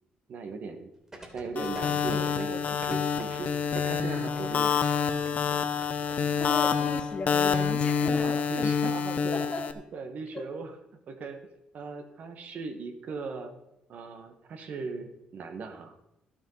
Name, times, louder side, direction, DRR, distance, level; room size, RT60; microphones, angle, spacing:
voice 1, 0.3-0.9 1.3-4.7 8.2-9.4 9.9-10.7 11.1-11.4 11.7-13.5 13.9-16.0, right 4 dB, 60° right, 6 dB, 1.5 m, -38 dB
sound 1, 1.1-6.2 6.4-6.5, right 1 dB, 20° right, 2.9 m, -45 dB
sound 2, 1.6-9.7, left 7 dB, 55° left, 0.8 m, -27 dB
voice 2, 6.4-8.7 9.3-9.6 10.3-10.5, left 3 dB, 35° left, 5 dB, 1.8 m, -36 dB
12.0 x 7.2 x 5.7 m, 0.89 s
cardioid pair, 95°, 3 cm